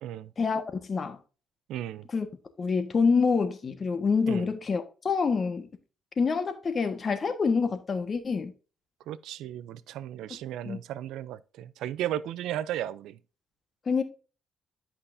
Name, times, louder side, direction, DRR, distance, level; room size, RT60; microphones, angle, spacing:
voice 1, 0.4-1.2 2.1-2.3 2.6-5.7 6.2-8.5 10.6-10.8 13.8-14.0, left 5 dB, 40° left, 1.4 m, -26 dB
voice 2, 1.7-2.0 4.3-4.4 9.1-13.2, right 12 dB, 85° right, 0.5 m, -35 dB
11.0 x 5.7 x 2.6 m
cardioid pair, 90°, 0 cm